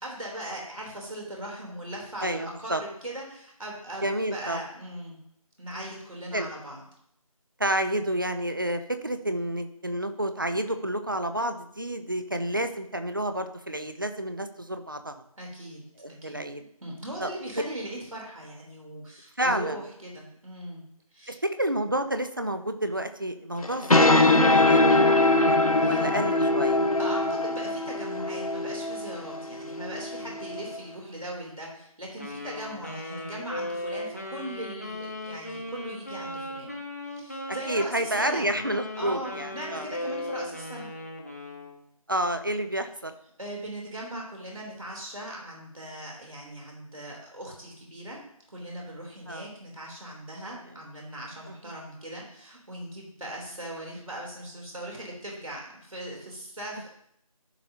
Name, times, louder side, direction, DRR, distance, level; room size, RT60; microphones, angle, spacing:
voice 1, 0.0-5.2 5.6-6.8 15.4-15.8 16.2-16.5 16.8-20.8 21.1-21.4 25.8-26.1 27.0-36.7 37.1-38.5 39.0-40.9 43.4-48.2 48.5-56.9, right 1 dB, 65° right, -2 dB, 3.4 m, -39 dB
voice 2, 2.2-2.8 4.0-4.6 6.3-6.5 7.6-15.2 16.0-16.6 17.2-17.3 19.4-19.8 21.3-25.0 25.8-26.8 37.7-39.9 42.1-43.1 49.3-49.5 51.5-51.6, right 1 dB, 35° right, 8 dB, 0.6 m, -30 dB
sound 1, 23.6-30.8, left 2 dB, 75° left, 1.0 m, -22 dB
Wind instrument woodwind instrument, 32.2-41.8, left 1 dB, 25° left, 0.8 m, -37 dB
14.0 x 5.7 x 2.8 m, 0.72 s
figure-of-eight pair, 175°, 19 cm